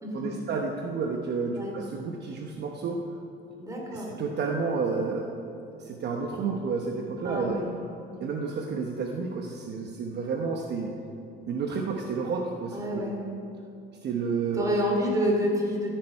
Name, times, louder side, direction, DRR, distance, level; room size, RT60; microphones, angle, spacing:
voice 1, 0.1-3.0 3.9-5.3 5.8-7.6 8.2-10.9 11.5-13.0 14.0-14.7, right 5 dB, 55° right, 2 dB, 1.0 m, -30 dB
voice 2, 3.6-4.1 7.2-7.7 12.7-13.2 14.5-15.9, equal, 15° right, -1 dB, 2.9 m, -28 dB
14.0 x 9.0 x 5.5 m, 2.6 s
cardioid pair, 125°, 21 cm